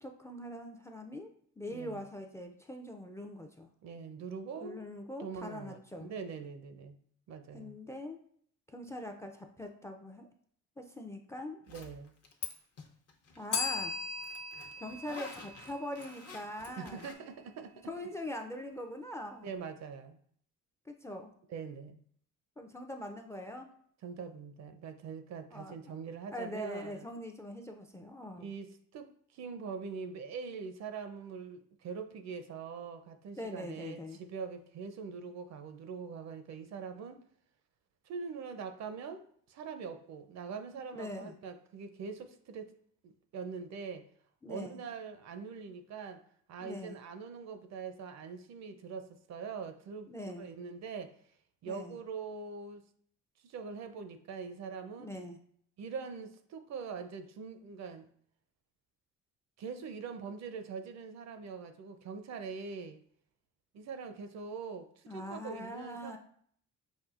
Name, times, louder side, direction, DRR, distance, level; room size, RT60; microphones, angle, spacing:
voice 1, 0.0-3.7 4.6-6.1 7.5-8.2 8.7-10.3 10.8-11.6 13.4-14.0 14.8-17.1 17.9-19.5 20.9-21.3 22.6-23.7 25.5-26.0 26.3-28.5 33.4-34.2 40.9-41.3 44.4-44.8 46.6-47.0 50.1-50.5 51.6-52.0 55.0-55.4 65.1-66.2, left 1 dB, 10° left, 0.3 m, -42 dB
voice 2, 1.7-2.0 3.8-4.9 5.2-7.0 7.3-7.7 11.7-12.1 16.8-17.9 19.4-20.2 21.5-22.0 24.0-27.0 28.4-37.2 38.0-42.7 43.0-44.1 44.5-46.2 46.5-51.2 51.6-52.8 53.4-55.1 55.8-58.1 59.6-63.0 63.7-66.2, right 5 dB, 65° right, 0.5 m, -43 dB
Zipper (clothing), 11.7-12.5 12.8-17.1, left 6 dB, 55° left, 0.8 m, -47 dB
Bell, 13.5-16.3, left 4 dB, 80° left, 1.0 m, -38 dB
5.4 x 2.6 x 2.4 m
cardioid pair, 90°, 30 cm